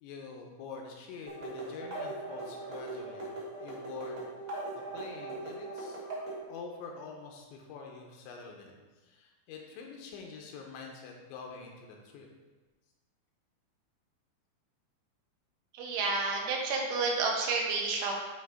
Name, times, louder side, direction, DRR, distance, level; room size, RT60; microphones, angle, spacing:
voice 1, 0.0-4.3 4.7-6.0 6.5-12.3, left 5 dB, 80° left, 1 dB, 2.9 m, -46 dB
sound 1, 1.3-6.4, right 2 dB, 35° right, 1.4 m, -40 dB
voice 2, 15.8-18.1, right 4 dB, 80° right, -1 dB, 3.5 m, -30 dB
11.0 x 3.6 x 4.9 m, 1.2 s
omnidirectional pair, 5.5 m